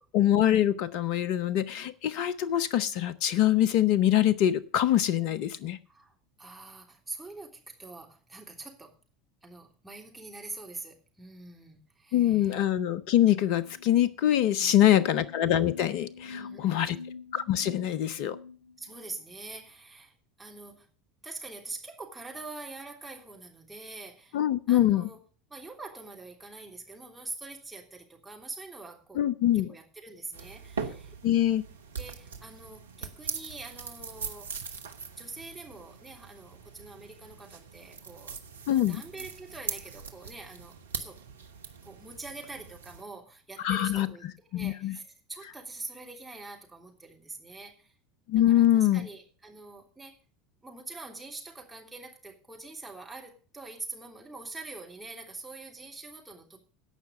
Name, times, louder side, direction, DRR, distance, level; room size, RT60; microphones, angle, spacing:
voice 1, 0.1-5.8 12.1-17.0 17.3-18.4 24.3-25.1 29.1-29.7 31.2-31.6 38.7-39.0 43.6-44.1 44.5-45.0 48.3-49.1, left 12 dB, 55° left, 18 dB, 0.6 m, -24 dB
voice 2, 5.9-8.9 9.4-12.6 14.6-15.1 16.3-17.0 18.8-20.9 21.2-24.4 24.7-25.2 25.5-29.2 29.5-31.1 32.0-34.6 35.1-38.4 38.7-41.2 41.8-47.9 48.5-50.1 50.6-56.6, right 3 dB, 10° right, 0 dB, 3.3 m, -44 dB
sound 1, 13.5-19.2, left 4 dB, 85° left, 1.5 m, -46 dB
sound 2, 30.3-43.0, right 5 dB, 80° right, 1.1 m, -41 dB
17.0 x 5.7 x 6.5 m, 0.40 s
figure-of-eight pair, 75°, 0 cm